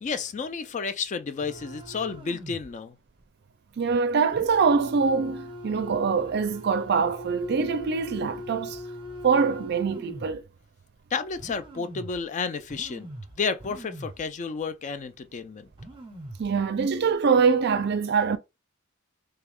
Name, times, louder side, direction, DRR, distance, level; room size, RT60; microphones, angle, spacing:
voice 1, 0.0-3.0 11.1-13.1 13.4-15.7, left 5 dB, 35° left, 0.3 m, -31 dB
sound 1, 1.4-2.7 3.1-3.2 4.3-10.4 11.0-11.1 11.4-12.2 12.7-14.3 14.6-14.7 15.4-15.5 15.7-16.5 17.0-17.2, equal, 25° right, 0.7 m, -42 dB
voice 2, 3.8-8.8 9.2-10.4 16.4-18.4, right 5 dB, 50° right, 0.4 m, -24 dB
3.3 x 2.3 x 3.5 m
head